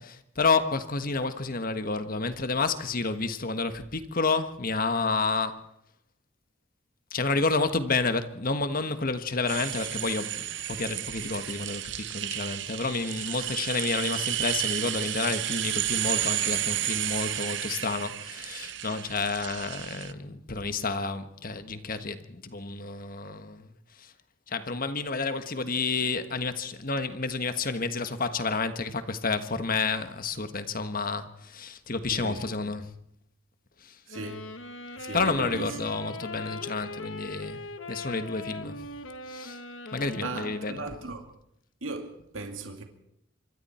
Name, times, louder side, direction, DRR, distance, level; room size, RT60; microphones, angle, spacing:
voice 1, 0.0-5.7 7.1-23.7 24.0-24.1 24.5-32.9 33.8-34.0 35.1-37.6 37.9-38.8 39.3-39.6 39.9-40.8, left 3 dB, 45° left, 1.5 m, -30 dB
sound 1, 9.5-20.1, right 13 dB, 60° right, 0.9 m, -32 dB
voice 2, 32.1-32.5 34.1-34.5 34.9-35.8 40.2-41.3 41.8-42.8, right 2 dB, 85° right, 2.4 m, -37 dB
Wind instrument woodwind instrument, 34.1-41.3, left 2 dB, 75° left, 1.6 m, -40 dB
26.0 x 23.5 x 4.4 m
head